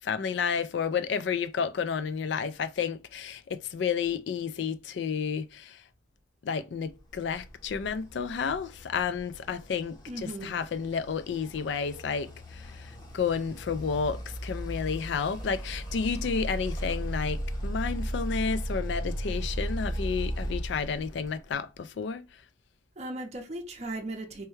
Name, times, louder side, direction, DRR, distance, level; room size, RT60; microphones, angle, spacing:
voice 1, 0.0-5.8 6.4-10.0 10.2-22.2, left 6 dB, 60° left, 0.3 m, -31 dB
sound 1, 7.1-21.5, equal, 20° left, 0.7 m, -36 dB
voice 2, 10.1-10.6 23.0-24.5, right 2 dB, 35° right, 0.6 m, -37 dB
4.5 x 2.1 x 3.1 m
head